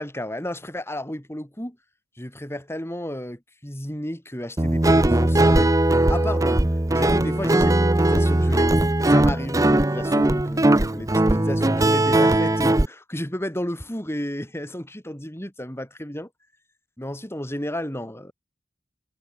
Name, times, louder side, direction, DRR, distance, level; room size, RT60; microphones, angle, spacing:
voice 1, 0.0-1.8 2.2-5.7 6.1-6.6 7.0-8.7 9.1-16.3 17.0-18.3, left 1 dB, 15° left, 5.2 m, -32 dB
Guitar, 4.6-12.9, right 1 dB, 20° right, 0.8 m, -19 dB
head